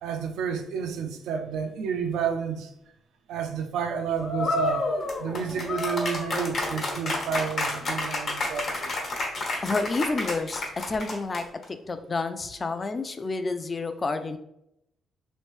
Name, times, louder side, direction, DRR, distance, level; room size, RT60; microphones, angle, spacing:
voice 1, 0.0-2.7 3.3-4.9 5.2-8.9, right 6 dB, 85° right, 0.4 m, -30 dB
sound 1, 4.2-11.6, left 2 dB, 55° left, 1.1 m, -29 dB
voice 2, 9.6-10.6 10.9-11.5 11.9-14.4, left 3 dB, 30° left, 0.4 m, -29 dB
3.1 x 2.5 x 3.1 m
cardioid pair, 90°, 0 cm